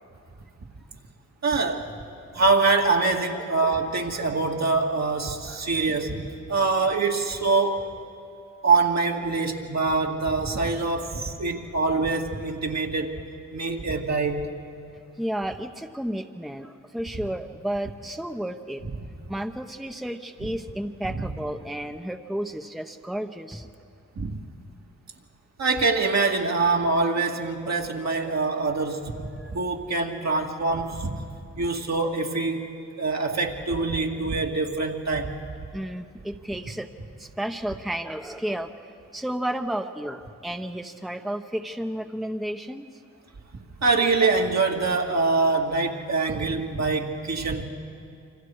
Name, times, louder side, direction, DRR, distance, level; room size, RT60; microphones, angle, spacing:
voice 1, 1.4-2.0 2.3-7.9 8.6-13.2 13.5-14.5 21.1-21.2 24.2-24.4 25.6-31.2 31.6-35.4 43.8-47.6, right 3 dB, 60° right, 1 dB, 2.3 m, -24 dB
voice 2, 3.3-3.7 4.1-4.3 5.5-5.6 10.5-10.7 15.2-18.8 19.3-23.7 29.4-29.5 35.7-36.9 37.2-38.7 39.1-43.0, right 1 dB, ahead, 5 dB, 1.0 m, -32 dB
27.5 x 25.0 x 4.8 m, 2.5 s
cardioid pair, 55°, 32 cm